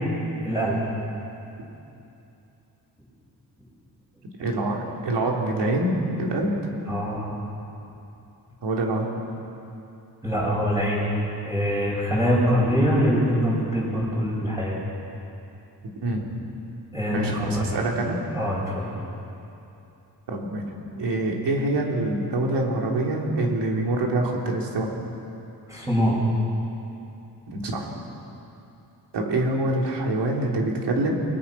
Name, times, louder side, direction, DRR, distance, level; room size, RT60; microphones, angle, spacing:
voice 1, 0.4-0.8 6.9-7.4 10.2-11.1 11.4-14.8 16.9-17.9 18.3-18.9 25.7-26.2, equal, 10° right, -6 dB, 6.4 m, -24 dB
voice 2, 4.4-6.5 8.6-9.1 16.0-16.3 17.1-18.2 20.3-20.6 21.0-24.9 27.5-27.9 29.1-31.1, right 2 dB, 85° right, -1 dB, 3.8 m, -25 dB
30.0 x 21.0 x 6.0 m, 2.8 s
wide cardioid pair, 140°, 41 cm